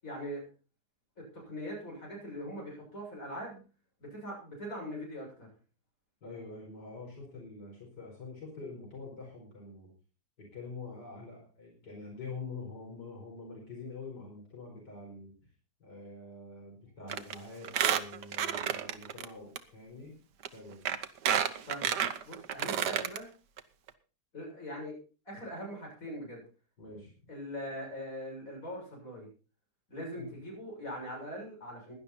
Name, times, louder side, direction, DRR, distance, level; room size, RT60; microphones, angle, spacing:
voice 1, 0.0-0.4 1.2-3.6 4.0-5.5 21.6-23.3 24.3-24.9 25.3-26.4 27.3-29.3 29.9-31.9, equal, 50° left, -1 dB, 7.3 m, -41 dB
voice 2, 6.2-9.9 10.5-15.3 15.8-20.1 20.5-20.9 26.8-27.1 30.2-30.4, left 3 dB, 85° left, -1 dB, 5.4 m, -45 dB
Squeak, 17.1-17.3 17.6-19.3 19.6-19.7 20.4-20.5 20.9-23.2 23.6-23.7 23.9-24.0, right 9 dB, 85° right, 1.6 m, -30 dB
17.5 x 11.0 x 4.2 m, 0.35 s
omnidirectional pair, 1.8 m